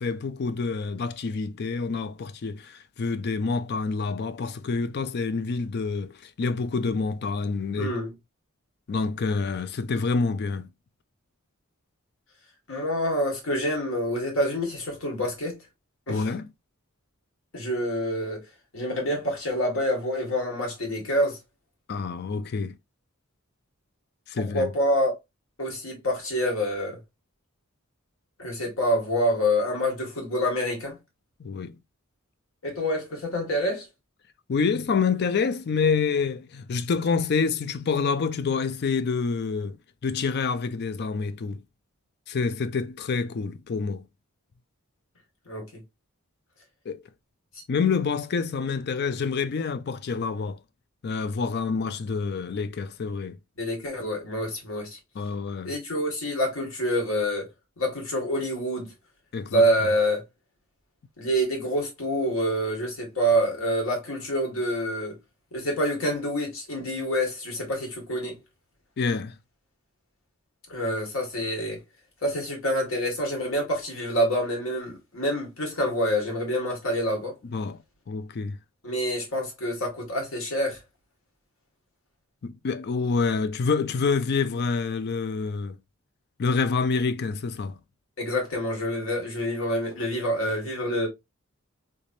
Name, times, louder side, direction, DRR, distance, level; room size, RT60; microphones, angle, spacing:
voice 1, 0.0-7.9 8.9-10.7 16.1-16.5 21.9-22.8 24.3-24.7 31.4-31.8 34.5-39.8 40.0-41.6 42.3-44.1 46.9-47.0 47.7-50.6 51.0-53.4 55.1-55.7 59.3-59.6 69.0-69.4 77.5-77.8 78.1-78.6 82.4-85.8 86.4-87.8, left 5 dB, 50° left, 0.4 m, -27 dB
voice 2, 7.8-8.1 12.7-15.6 16.1-16.3 17.5-18.4 18.7-21.4 24.4-25.2 25.6-27.0 28.4-31.0 32.6-33.9 45.5-45.8 53.6-55.0 55.6-57.5 57.8-58.9 59.5-60.2 61.2-65.2 65.5-68.4 70.7-71.8 72.2-77.3 78.8-80.8 88.2-91.1, equal, 75° left, 1.8 m, -27 dB
3.3 x 3.3 x 2.6 m
head